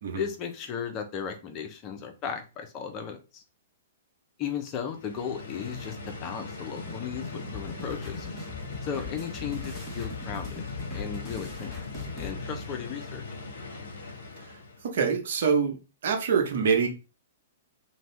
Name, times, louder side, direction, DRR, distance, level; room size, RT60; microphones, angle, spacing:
voice 1, 0.1-3.4 4.4-8.3 8.8-10.6 10.9-11.9 12.1-13.2, left 7 dB, 35° left, 5 dB, 0.7 m, -35 dB
sound 1, 4.9-14.9, left 3 dB, 65° left, 0.9 m, -40 dB
sound 2, 6.7-12.3, left 4 dB, 15° left, 1.2 m, -40 dB
voice 2, 14.8-15.8 16.0-16.9, right 6 dB, 65° right, 3 dB, 0.9 m, -25 dB
2.6 x 2.3 x 3.3 m, 0.31 s
hypercardioid pair, 115°, 0 cm